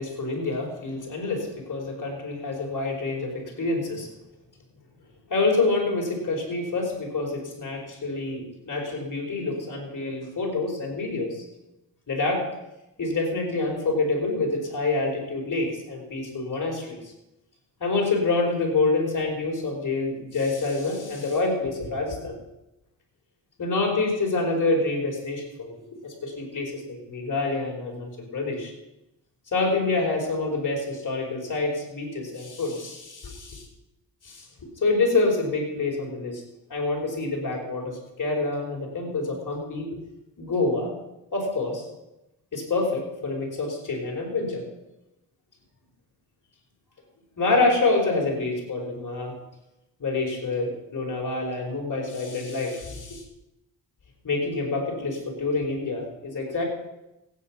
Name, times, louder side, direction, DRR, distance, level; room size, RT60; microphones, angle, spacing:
voice 1, 0.0-4.1 5.3-11.4 12.1-12.5 13.0-17.0 17.8-22.4 23.6-28.7 29.5-33.6 34.2-36.4 36.7-40.0 40.4-40.9 41.3-41.9 42.5-44.7 47.4-49.3 50.0-53.2 54.2-56.6, left 3 dB, 45° left, 0 dB, 4.9 m, -27 dB
15.0 x 9.4 x 6.1 m, 0.94 s
cardioid pair, 80°, 44 cm